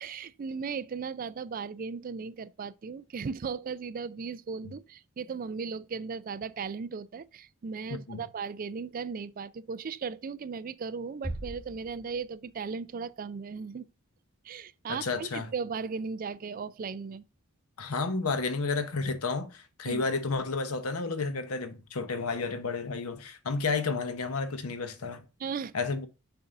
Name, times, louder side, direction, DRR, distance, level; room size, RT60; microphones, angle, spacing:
voice 1, 0.0-13.9 14.4-17.2 19.9-20.0 25.4-25.7, right 5 dB, 40° right, 0.3 m, -37 dB
sound 1, 11.2-12.9, right 1 dB, 5° right, 1.2 m, -40 dB
voice 2, 14.9-15.5 17.8-25.2 25.7-26.1, left 4 dB, 85° left, 0.9 m, -31 dB
6.8 x 2.6 x 5.6 m
head